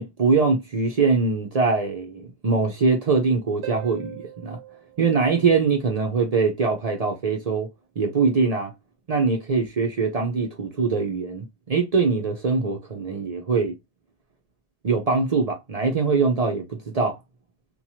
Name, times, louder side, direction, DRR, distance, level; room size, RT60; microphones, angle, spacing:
voice 1, 0.0-4.6 5.0-7.7 8.0-8.7 9.1-13.8 14.8-17.2, right 4 dB, 45° right, 0.5 m, -23 dB
Harp, 3.6-6.1 9.6-9.7, right 14 dB, 75° right, 0.9 m, -41 dB
2.9 x 2.3 x 2.8 m
omnidirectional pair, 1.2 m